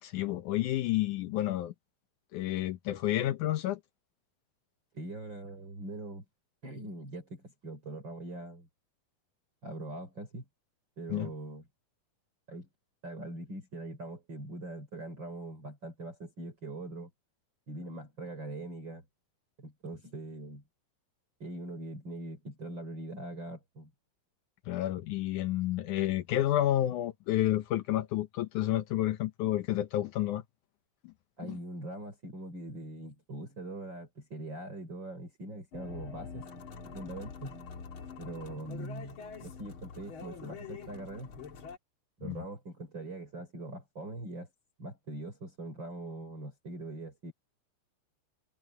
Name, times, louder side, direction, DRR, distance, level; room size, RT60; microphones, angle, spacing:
voice 1, 0.0-1.7 2.3-3.8 11.1-11.3 24.6-30.4 31.0-31.1 31.4-31.6 42.2-42.4, left 13 dB, 90° left, 1.7 m, -30 dB
voice 2, 4.9-6.2 6.6-8.7 9.6-10.4 11.0-11.6 12.5-12.7 13.0-17.1 17.7-19.0 19.6-20.6 21.4-23.9 31.4-36.4 36.9-37.6 38.2-41.3 42.2-44.5 44.8-47.3, right 1 dB, 30° right, 4.3 m, -42 dB
sound 1, 35.7-41.8, left 5 dB, 40° left, 2.0 m, -45 dB
omnidirectional pair, 4.8 m